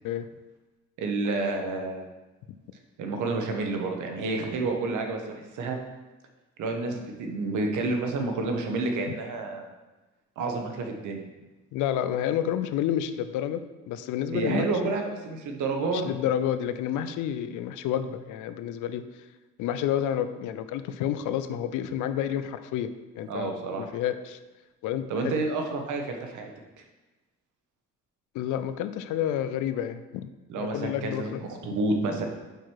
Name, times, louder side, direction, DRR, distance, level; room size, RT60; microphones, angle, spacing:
voice 1, 1.0-2.1 3.0-5.8 6.6-9.7 10.4-11.2 14.3-16.2 23.3-23.9 25.1-26.5 30.5-32.3, right 3 dB, 80° right, 4 dB, 1.0 m, -29 dB
voice 2, 11.7-14.9 15.9-19.0 19.6-22.9 23.2-24.4 24.8-25.4 28.3-30.3 30.6-31.4, left 10 dB, 85° left, 11 dB, 0.5 m, -30 dB
5.0 x 4.6 x 4.6 m, 1.1 s
cardioid pair, 90°, 30 cm